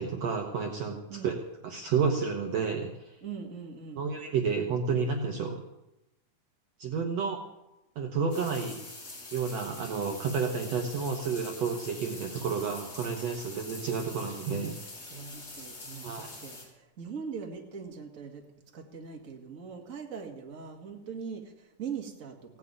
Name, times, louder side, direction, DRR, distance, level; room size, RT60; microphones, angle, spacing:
voice 1, 0.0-1.3 1.6-3.2 4.0-5.6 6.8-7.4 8.0-8.8 9.3-14.9 16.0-16.4, right 5 dB, 60° right, 3 dB, 2.0 m, -31 dB
voice 2, 3.2-4.0 15.1-18.4 18.7-22.6, right 6 dB, 30° right, 1 dB, 2.0 m, -41 dB
sound 1, 8.3-16.6, left 2 dB, 50° left, 5.4 m, -45 dB
16.5 x 8.3 x 9.0 m, 0.93 s
omnidirectional pair, 3.8 m